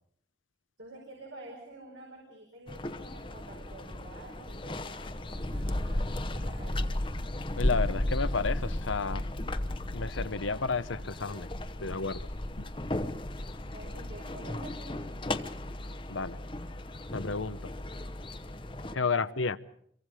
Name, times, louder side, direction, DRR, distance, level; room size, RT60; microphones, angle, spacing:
voice 1, 0.8-7.0 13.7-15.0 16.1-16.2 18.9-19.1, right 1 dB, 80° right, -1 dB, 4.8 m, -49 dB
sound 1, 2.7-19.0, left 1 dB, 25° left, 0.9 m, -35 dB
voice 2, 7.6-9.2 9.9-11.5 11.8-12.2 12.6-12.7 16.1-16.4 17.1-17.6 18.9-19.6, left 4 dB, 85° left, 13 dB, 0.9 m, -31 dB
27.5 x 23.0 x 5.0 m, 0.67 s
head